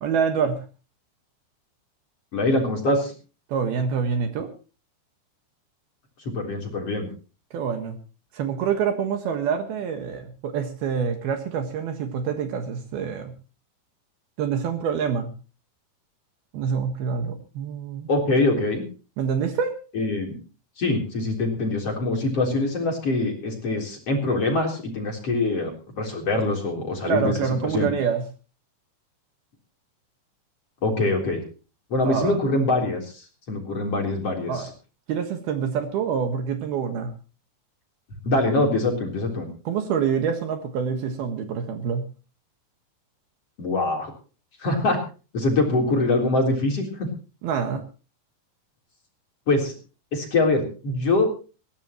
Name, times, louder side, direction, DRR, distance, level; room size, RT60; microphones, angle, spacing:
voice 1, 0.0-0.6 3.5-4.5 7.5-8.0 8.3-13.3 14.4-15.3 16.5-18.1 19.2-19.7 27.1-28.2 32.0-32.4 34.5-34.7 35.1-37.1 39.7-42.0 47.4-47.8, right 6 dB, 65° right, 7 dB, 3.2 m, -26 dB
voice 2, 2.3-3.1 6.2-7.1 18.1-18.9 19.9-20.4 20.8-27.4 27.7-27.9 30.8-31.4 31.9-34.7 38.2-39.5 43.6-44.1 44.6-45.0 45.3-47.1 49.5-49.8 50.1-51.3, left 2 dB, 35° left, 2 dB, 4.4 m, -24 dB
21.0 x 16.0 x 3.0 m, 0.35 s
omnidirectional pair, 5.1 m